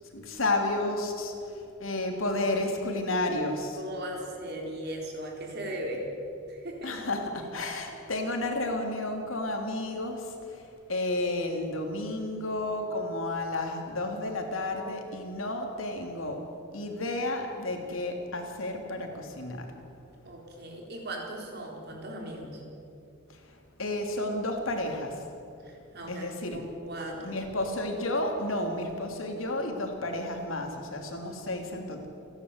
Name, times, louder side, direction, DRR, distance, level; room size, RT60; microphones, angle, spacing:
voice 1, 0.1-1.3 1.8-3.8 6.8-10.6 10.9-16.4 16.7-19.7 23.8-25.2 26.1-26.6 27.2-32.1, left 2 dB, 80° left, 3 dB, 3.2 m, -31 dB
voice 2, 3.8-6.1 6.5-7.0 20.3-22.6 25.6-27.5, right 1 dB, 55° right, 1 dB, 4.1 m, -38 dB
28.5 x 11.5 x 8.2 m, 2.7 s
head